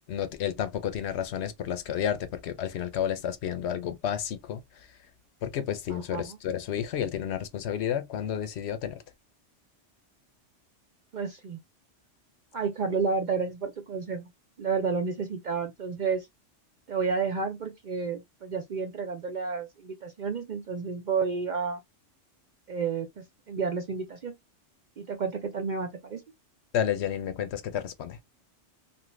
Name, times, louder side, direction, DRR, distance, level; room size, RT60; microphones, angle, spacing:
voice 1, 0.1-4.9 5.4-9.0 26.7-28.2, left 9 dB, 70° left, 0.8 m, -31 dB
voice 2, 5.9-6.4 11.1-11.6 12.5-14.3 14.6-16.3 16.9-21.8 22.7-24.3 25.0-26.2, right 5 dB, 55° right, 0.5 m, -31 dB
2.8 x 2.6 x 3.1 m
omnidirectional pair, 1.2 m